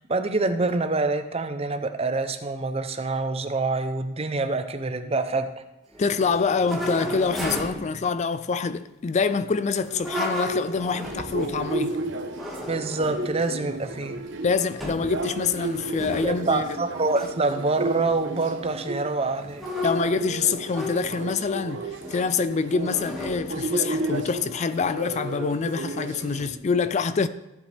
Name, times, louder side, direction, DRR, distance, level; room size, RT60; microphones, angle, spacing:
voice 1, 0.0-5.5 12.7-14.2 16.2-19.7, right 3 dB, 30° right, 0.7 m, -26 dB
sound 1, 5.9-7.9 9.8-11.9 12.3-13.3 13.8-14.4 14.8-15.1 15.4-16.6 17.1-17.3 19.4-21.4 22.0-22.3 22.8-24.4, left 1 dB, ahead, 1.9 m, -34 dB
voice 2, 6.0-12.0 14.4-16.6 19.8-21.8 22.1-27.3, left 5 dB, 35° left, 0.4 m, -26 dB
sound 2, 11.0-26.5, right 2 dB, 65° right, 1.0 m, -33 dB
15.0 x 7.9 x 3.4 m
head